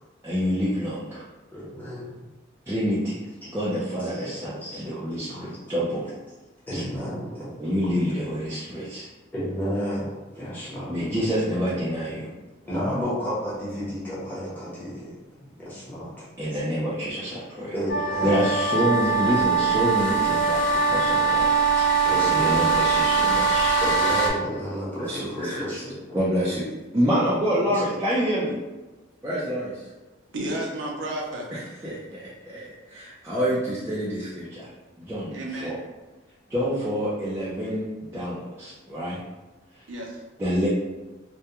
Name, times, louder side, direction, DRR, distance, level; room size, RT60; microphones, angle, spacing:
voice 1, 0.2-1.2 2.7-6.1 6.7-6.8 7.6-9.1 10.9-12.3 16.4-17.7 18.2-21.5 21.9-23.8 25.0-25.6 26.1-26.7 26.9-28.6 29.2-29.9 31.5-34.7 35.0-35.3 35.6-35.8 36.5-39.2 40.4-40.7, equal, 15° right, -9 dB, 0.4 m, -27 dB
voice 2, 1.5-2.2 3.4-3.5 4.0-4.3 4.6-4.9 5.2-5.6 6.7-7.5 7.9-8.1 9.3-10.9 12.6-16.6 17.7-18.5 18.9-19.4 20.1-20.2 21.1-21.3 22.0-22.7 23.8-26.5 27.6-27.8, equal, 10° left, -10 dB, 0.9 m, -32 dB
sound 1, 17.9-24.3, right 4 dB, 75° left, 0.4 m, -22 dB
voice 3, 30.3-31.5 31.8-31.9 35.3-35.8 39.9-40.2, right 1 dB, 85° right, -1 dB, 0.5 m, -32 dB
2.2 x 2.2 x 2.8 m, 1.2 s
head